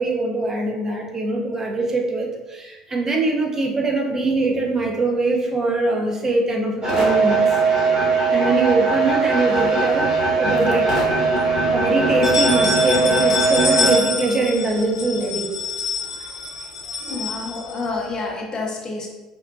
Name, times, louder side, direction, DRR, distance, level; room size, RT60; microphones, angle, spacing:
voice 1, 0.0-7.4 8.3-11.0 11.7-15.5 17.1-17.2, right 2 dB, 20° right, 0 dB, 0.6 m, -22 dB
sound 1, 6.8-14.0, right 3 dB, 35° right, 1.4 m, -19 dB
sound 2, 9.6-10.5 10.9-11.0 11.4-11.5 12.0-18.2, left 3 dB, 80° left, 0.4 m, -27 dB
voice 2, 17.1-19.1, left 3 dB, 35° left, -1 dB, 0.7 m, -29 dB
3.6 x 2.2 x 2.5 m, 1.1 s
figure-of-eight pair, 60°, 2 cm